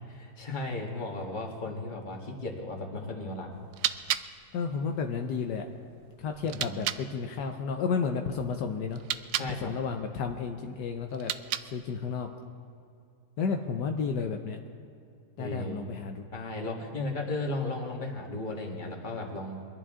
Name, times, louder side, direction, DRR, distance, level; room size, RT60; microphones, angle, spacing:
voice 1, 0.1-3.5 6.4-6.9 9.3-9.7 15.4-15.8 16.3-19.6, left 2 dB, 25° left, 0 dB, 1.8 m, -35 dB
sound 1, 3.5-7.1 8.9-9.6 11.1-11.9, right 11 dB, 80° right, 0.7 m, -35 dB
voice 2, 4.5-5.6 6.2-9.0 9.6-11.3 11.7-12.3 13.4-14.6 15.4-16.2, left 5 dB, 75° left, 4 dB, 1.4 m, -32 dB
23.5 x 12.0 x 3.7 m, 2.5 s
omnidirectional pair, 1.9 m